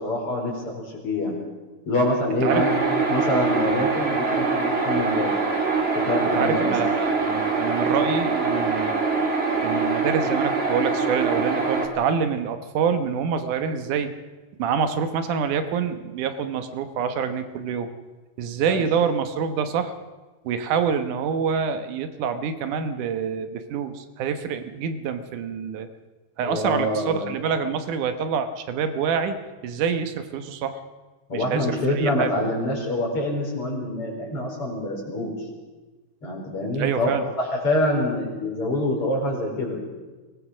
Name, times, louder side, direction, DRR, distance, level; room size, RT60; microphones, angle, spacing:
voice 1, 0.0-1.3 1.9-5.3 6.0-6.7 18.6-18.8 26.4-27.3 31.3-35.4 36.2-39.8, left 1 dB, 45° left, 0 dB, 5.3 m, -26 dB
sound 1, 2.5-11.9, right 4 dB, 20° right, 2.0 m, -24 dB
voice 2, 6.2-9.0 9.6-14.1 14.6-17.9 18.4-19.9 20.5-25.9 26.4-29.4 29.6-30.8 31.3-32.4 36.8-37.2, right 6 dB, 85° right, 9 dB, 2.7 m, -26 dB
23.0 x 18.5 x 6.3 m, 1.2 s
omnidirectional pair, 3.5 m